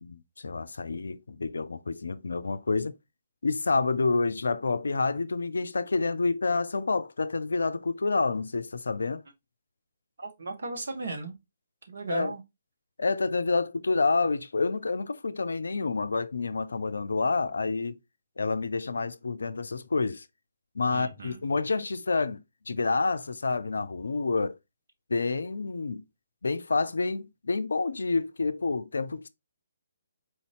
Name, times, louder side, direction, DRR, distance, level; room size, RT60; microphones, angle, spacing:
voice 1, 0.0-2.9 3.4-9.2 12.1-12.3 13.0-18.0 18.4-20.2 20.8-22.4 22.7-24.6 25.1-26.0 26.4-29.3, left 3 dB, 70° left, 0.4 m, -28 dB
voice 2, 10.2-11.4 11.9-12.4 20.9-21.4, right 3 dB, 60° right, 1.2 m, -36 dB
4.4 x 2.7 x 3.0 m
figure-of-eight pair, 135°, 0 cm